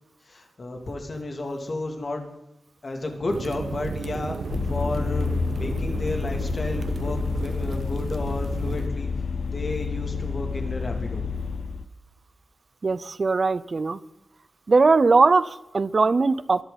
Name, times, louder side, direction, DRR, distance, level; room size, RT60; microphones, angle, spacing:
voice 1, 0.3-2.2 2.8-4.4 4.7-9.1 9.5-11.3, left 2 dB, 40° left, 3 dB, 2.8 m, -32 dB
sound 1, 3.3-8.9, right 4 dB, 75° right, 1.2 m, -34 dB
Vehicle, 4.5-11.8, left 5 dB, 85° left, 0.8 m, -29 dB
voice 2, 12.8-14.0 14.7-16.6, right 4 dB, 40° right, 17 dB, 0.6 m, -20 dB
23.0 x 11.5 x 4.1 m, 0.93 s
wide cardioid pair, 160°, 0 cm